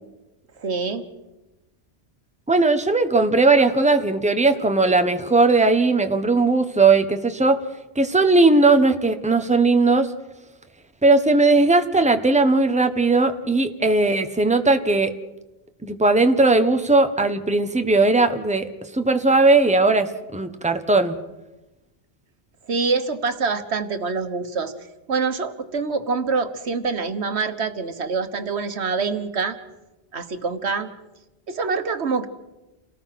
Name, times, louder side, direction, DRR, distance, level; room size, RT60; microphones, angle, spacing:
voice 1, 0.6-1.0 22.7-24.7 25.1-29.6 30.1-30.9 31.5-32.3, right 4 dB, 85° right, 9 dB, 1.6 m, -25 dB
voice 2, 2.5-7.6 7.9-10.1 11.0-15.1 15.8-18.7 18.9-21.2, right 3 dB, 5° right, 8 dB, 1.2 m, -18 dB
28.5 x 18.5 x 5.9 m, 1.0 s
omnidirectional pair, 1.1 m